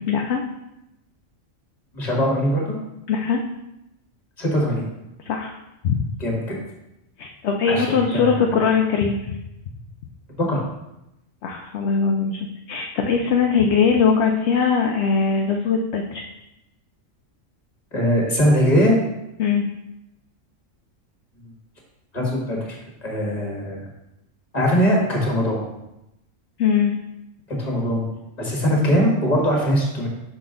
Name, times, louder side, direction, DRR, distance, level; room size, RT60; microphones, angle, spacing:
voice 1, 0.1-0.4 3.1-3.4 5.2-5.5 5.8-6.0 7.2-9.4 11.4-12.4 12.7-16.2 19.4-19.6 26.6-26.9, left 6 dB, 65° left, 2 dB, 0.8 m, -20 dB
voice 2, 1.9-2.8 4.4-4.8 6.2-6.6 7.7-8.6 10.3-10.6 17.9-18.9 22.1-23.9 24.5-25.6 27.6-28.0 28.4-30.1, equal, 30° left, -2 dB, 1.6 m, -21 dB
6.0 x 5.2 x 3.7 m, 0.90 s
omnidirectional pair, 1.4 m